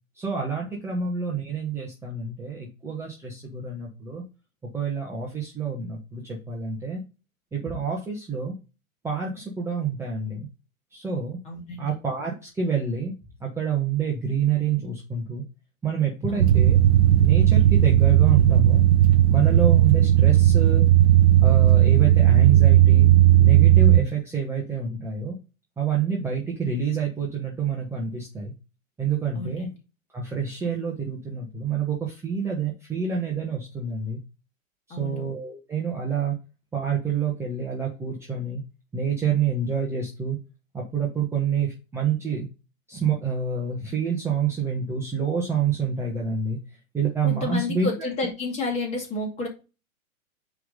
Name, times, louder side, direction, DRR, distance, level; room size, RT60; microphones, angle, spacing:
voice 1, 0.1-4.2 4.7-7.0 7.5-8.5 9.0-10.5 10.9-11.4 11.8-13.1 13.4-15.4 15.8-16.8 17.2-18.8 19.3-20.8 21.4-23.1 23.4-25.3 25.8-28.5 29.0-29.7 30.1-34.2 35.0-36.3 36.7-38.6 38.9-40.4 40.7-42.4 42.9-46.6 46.9-47.9, right 6 dB, 5° right, 1.3 m, -27 dB
voice 2, 11.4-12.0 16.3-16.6 29.3-29.7 34.9-35.3 47.2-49.5, left 2 dB, 15° left, 2.3 m, -31 dB
sound 1, 16.4-24.0, right 12 dB, 50° right, 0.8 m, -16 dB
9.2 x 3.6 x 4.0 m
figure-of-eight pair, 115°, 42 cm